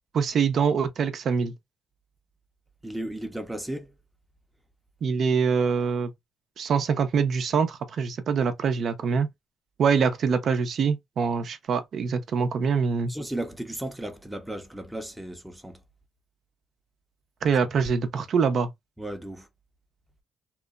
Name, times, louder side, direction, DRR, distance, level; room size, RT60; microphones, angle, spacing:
voice 1, 0.1-1.5 5.0-6.1 6.6-9.3 9.8-13.1 17.4-18.7, right 6 dB, 60° right, 0.5 m, -24 dB
voice 2, 2.8-3.8 13.1-15.8 19.0-19.4, right 1 dB, 5° right, 0.6 m, -35 dB
2.9 x 2.1 x 2.3 m
cardioid pair, 90°, 0 cm